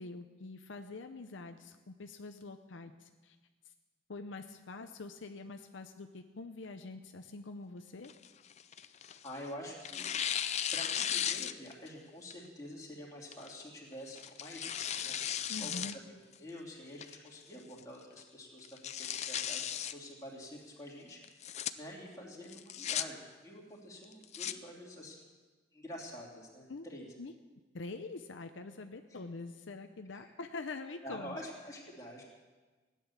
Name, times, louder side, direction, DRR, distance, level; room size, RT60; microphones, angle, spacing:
voice 1, 0.0-3.4 4.1-8.1 15.5-15.9 26.7-26.9 27.2-27.3 27.7-31.4, left 3 dB, 70° left, 6 dB, 0.7 m, -45 dB
Tearing, 8.0-9.4 9.8-11.9 12.3-12.4 13.3-13.6 14.2-15.9 16.3-16.4 17.0-17.4 17.8-17.9 18.2-18.3 18.6-19.9 21.2-21.7 22.5-23.0 24.0-24.5, left 9 dB, 35° left, 0.4 m, -36 dB
voice 2, 9.2-10.1 10.7-25.3 25.7-27.1 29.1-29.2 30.1-30.3 31.0-32.2, equal, 15° left, -4 dB, 3.0 m, -48 dB
16.0 x 10.0 x 7.2 m, 1.3 s
head